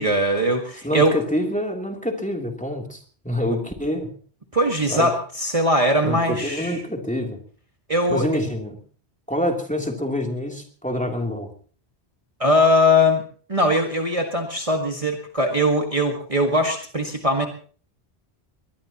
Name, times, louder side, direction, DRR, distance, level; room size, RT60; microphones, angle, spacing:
voice 1, 0.0-1.2 4.5-6.8 7.9-8.3 12.4-13.2 13.5-17.5, left 1 dB, 30° right, 3 dB, 1.8 m, -20 dB
voice 2, 0.8-4.1 4.9-5.1 6.0-7.4 8.1-8.8 9.3-11.5, equal, 5° left, 2 dB, 3.0 m, -26 dB
22.0 x 21.0 x 3.0 m, 0.43 s
omnidirectional pair, 1.1 m